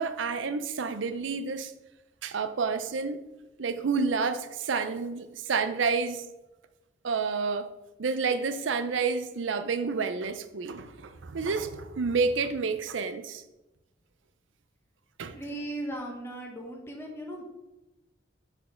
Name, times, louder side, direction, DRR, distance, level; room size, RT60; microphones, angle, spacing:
voice 1, 0.0-1.7 2.2-3.2 3.6-6.2 7.0-7.7 8.0-13.4 15.2-15.4, right 5 dB, 85° right, 0.5 m, -29 dB
voice 2, 15.3-17.5, right 1 dB, 15° left, 1.1 m, -37 dB
5.3 x 4.3 x 5.8 m
head